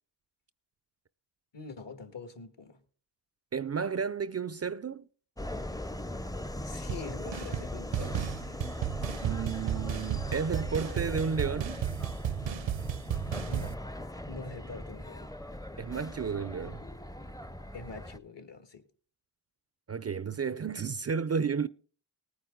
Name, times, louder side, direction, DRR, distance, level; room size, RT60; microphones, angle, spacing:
voice 1, 1.5-2.8 6.6-8.8 13.5-13.8 14.3-15.3 17.7-18.8, left 3 dB, 65° left, 1.7 m, -44 dB
voice 2, 3.5-5.1 9.2-11.8 15.8-16.8 19.9-21.7, right 6 dB, 35° right, 0.5 m, -32 dB
Subway metro underground, 5.4-18.2, left 1 dB, 10° left, 0.6 m, -40 dB
sound 1, 6.9-7.0 7.3-7.7 7.9-13.7, right 9 dB, 70° right, 0.7 m, -34 dB
19.0 x 9.4 x 3.8 m
cardioid pair, 50°, 46 cm